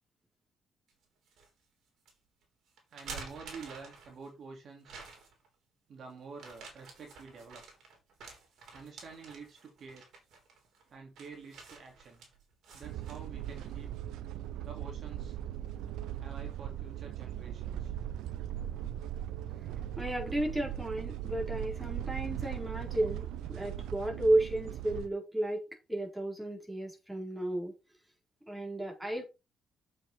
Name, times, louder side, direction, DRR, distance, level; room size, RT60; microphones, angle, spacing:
sound 1, 0.9-1.5 2.0-2.1 2.8-4.3 4.8-5.5 6.3-13.8, right 4 dB, 75° right, 3.6 m, -50 dB
voice 1, 2.9-5.0 5.9-7.6 8.7-10.1 10.9-12.3 12.7-13.9 14.6-15.4 16.2-17.9, right 5 dB, 60° right, 2.9 m, -48 dB
sound 2, 12.8-25.1, right 11 dB, 90° right, 0.7 m, -39 dB
voice 2, 20.0-25.6 25.9-27.7 28.5-29.2, right 1 dB, 10° right, 4.4 m, -33 dB
7.5 x 6.4 x 4.3 m
cardioid pair, 90°, 0 cm